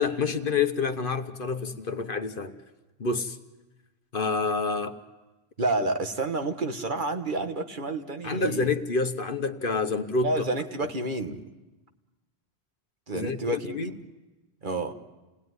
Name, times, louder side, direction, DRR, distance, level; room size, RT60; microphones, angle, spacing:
voice 1, 0.0-2.6 3.0-3.4 4.1-5.0 8.2-10.3 13.1-13.9, left 4 dB, 55° left, 1.2 m, -28 dB
voice 2, 5.6-8.7 10.2-11.4 13.1-14.0 14.6-14.9, right 2 dB, 50° right, 1.4 m, -29 dB
28.5 x 19.0 x 9.6 m
omnidirectional pair, 1.1 m